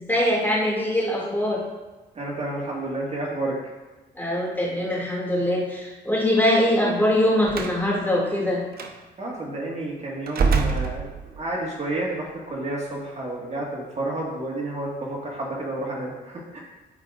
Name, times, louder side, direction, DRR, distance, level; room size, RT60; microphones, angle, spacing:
voice 1, 0.0-1.6 4.1-8.6, left 1 dB, 10° left, -4 dB, 2.4 m, -22 dB
voice 2, 2.2-3.5 9.2-11.1 11.3-16.6, right 2 dB, 35° right, -4 dB, 1.8 m, -30 dB
Slam, 7.5-7.8 8.7-8.9 10.3-11.5, right 4 dB, 50° right, 0.8 m, -24 dB
14.0 x 4.8 x 2.5 m, 1.2 s
cardioid pair, 90°, 20 cm